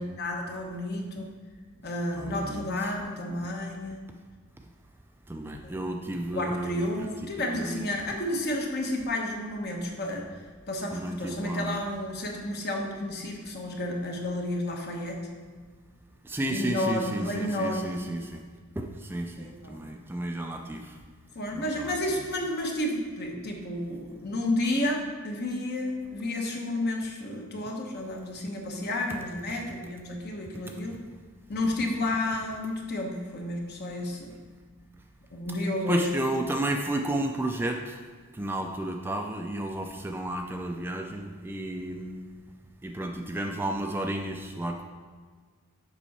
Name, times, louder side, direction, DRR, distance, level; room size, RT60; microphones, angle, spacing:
voice 1, 0.0-1.3 1.8-4.0 5.6-6.0 6.3-10.3 10.7-15.2 16.5-18.0 19.4-19.9 21.3-31.0 31.5-34.4 35.3-36.1, left 1 dB, 50° left, 1 dB, 1.1 m, -31 dB
voice 2, 2.2-2.6 5.3-7.1 7.6-7.9 10.9-11.8 16.2-18.4 18.8-20.9 21.6-22.2 35.9-38.0 38.3-42.5 42.8-44.8, right 1 dB, 10° right, 3 dB, 0.4 m, -32 dB
7.2 x 5.5 x 4.2 m, 1.6 s
head